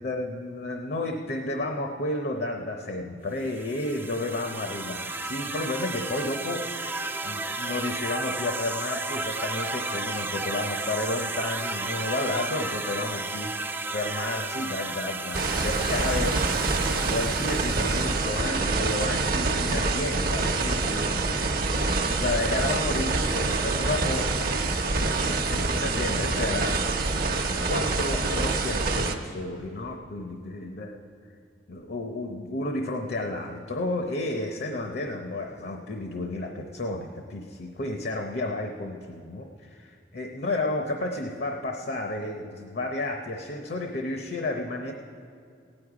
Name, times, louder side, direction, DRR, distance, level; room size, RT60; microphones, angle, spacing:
voice 1, 0.0-13.5 13.9-16.7 17.1-26.8 27.7-31.0 31.7-44.9, left 2 dB, 60° left, 3 dB, 0.8 m, -32 dB
sound 1, 3.4-18.5, right 2 dB, 10° right, 0.3 m, -33 dB
sound 2, 15.3-29.2, right 3 dB, 55° right, 0.8 m, -26 dB
16.0 x 9.8 x 4.9 m, 2.3 s
head